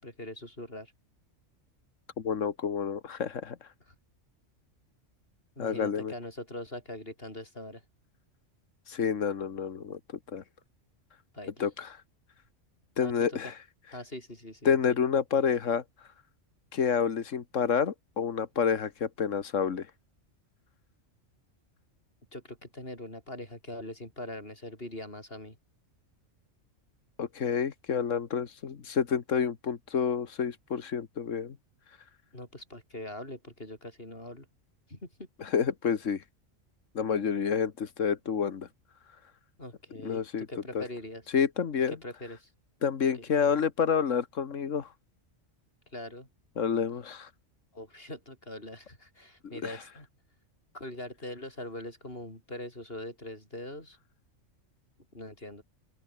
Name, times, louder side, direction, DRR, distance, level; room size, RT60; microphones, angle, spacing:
voice 1, 0.0-0.9 3.9-4.0 5.6-7.8 11.3-11.6 13.0-13.5 13.9-14.8 22.3-25.6 32.3-34.5 34.9-35.3 39.6-41.3 42.0-42.5 43.1-43.3 45.9-46.3 47.7-50.1 50.7-54.0 55.1-55.6, left 1 dB, 50° left, 8.4 m, -42 dB
voice 2, 2.2-3.6 5.6-6.1 8.9-10.0 10.3-10.4 11.6-12.0 13.0-13.5 14.7-15.8 16.7-19.9 27.2-31.6 35.4-36.2 37.0-38.7 40.0-40.5 40.7-40.8 41.3-41.9 42.8-44.9 46.6-47.3 49.6-49.8, left 7 dB, 85° left, 1.8 m, -29 dB
open air
omnidirectional pair, 1.3 m